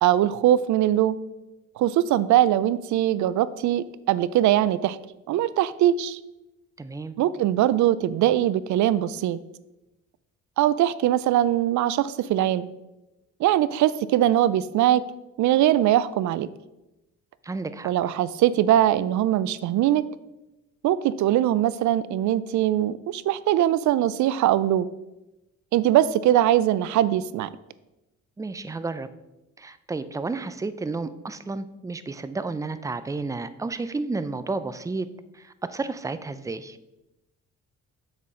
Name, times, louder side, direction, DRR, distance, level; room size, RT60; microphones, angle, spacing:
voice 1, 0.0-1.2 1.8-5.0 5.3-6.2 7.2-9.4 10.6-12.7 13.4-15.0 15.4-16.5 17.8-20.0 20.8-24.9 25.7-27.5, right 12 dB, 70° right, 17 dB, 0.4 m, -21 dB
voice 2, 6.8-7.1 17.4-17.9 28.4-29.1 29.6-35.1 35.3-36.8, right 3 dB, 10° right, 12 dB, 0.4 m, -31 dB
7.3 x 6.1 x 3.7 m, 0.97 s
cardioid pair, 90°, 30 cm